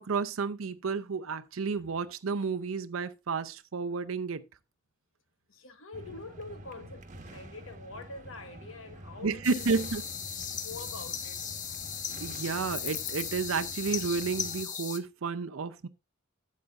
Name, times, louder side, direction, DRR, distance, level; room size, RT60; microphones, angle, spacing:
voice 1, 0.0-4.4 9.2-10.0 12.2-15.9, right 5 dB, 80° right, 0.6 m, -31 dB
voice 2, 5.5-9.9 10.5-11.4, left 3 dB, 75° left, 1.2 m, -45 dB
sound 1, 5.9-14.6, right 1 dB, 40° right, 1.2 m, -48 dB
sound 2, 9.4-15.0, left 8 dB, 40° left, 1.0 m, -37 dB
12.5 x 8.4 x 2.4 m
head